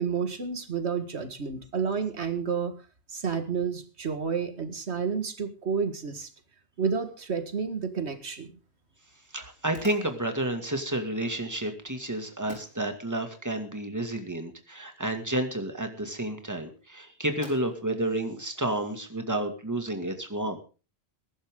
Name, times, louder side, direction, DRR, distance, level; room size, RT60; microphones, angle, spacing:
voice 1, 0.0-2.7 3.1-6.3 6.8-8.5, right 6 dB, 90° right, 8 dB, 2.0 m, -30 dB
sound 1, 7.6-19.3, left 1 dB, 75° left, 5.0 m, -55 dB
voice 2, 9.3-20.6, right 1 dB, 15° right, 5 dB, 2.3 m, -31 dB
21.5 x 11.5 x 3.8 m, 0.35 s
omnidirectional pair, 1.1 m